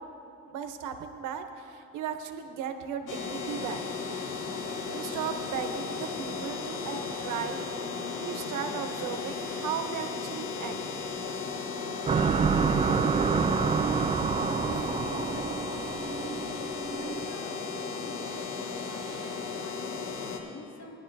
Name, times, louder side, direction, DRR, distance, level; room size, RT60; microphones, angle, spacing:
voice 1, 0.4-3.8 4.9-7.7 8.1-10.8, right 7 dB, 85° right, 7 dB, 0.9 m, -36 dB
sound 1, 3.1-20.4, left 4 dB, 85° left, 1.2 m, -35 dB
sound 2, 12.1-17.3, right 5 dB, 20° right, 0.4 m, -27 dB
voice 2, 13.7-14.3 14.5-16.1 16.6-21.0, left 3 dB, 65° left, -1 dB, 2.1 m, -47 dB
18.0 x 10.5 x 2.7 m, 2.7 s
cardioid pair, 90°, 30 cm